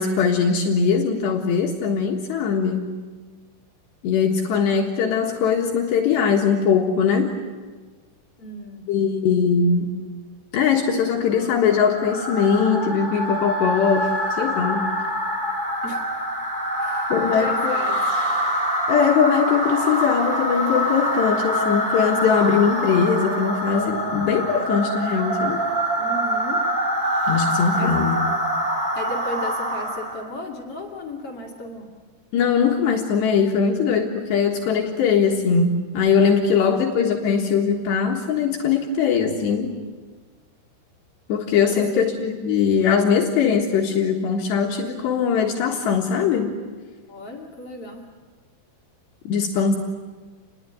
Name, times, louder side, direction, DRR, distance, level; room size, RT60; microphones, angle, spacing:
voice 1, 0.0-2.9 4.0-7.4 8.9-9.9 10.5-14.8 17.1-17.8 18.9-25.6 27.3-28.3 32.3-39.7 41.3-46.5 49.3-49.8, left 6 dB, 70° left, 1 dB, 3.5 m, -21 dB
voice 2, 8.4-8.8 15.8-16.0 16.8-18.3 26.0-26.6 27.7-28.0 28.9-31.9 36.5-36.7 41.7-42.1 47.1-48.1, left 1 dB, 40° left, 0 dB, 2.6 m, -35 dB
sound 1, 11.4-30.3, equal, 25° right, 1.0 m, -25 dB
29.0 x 21.0 x 9.6 m, 1.4 s
omnidirectional pair, 5.6 m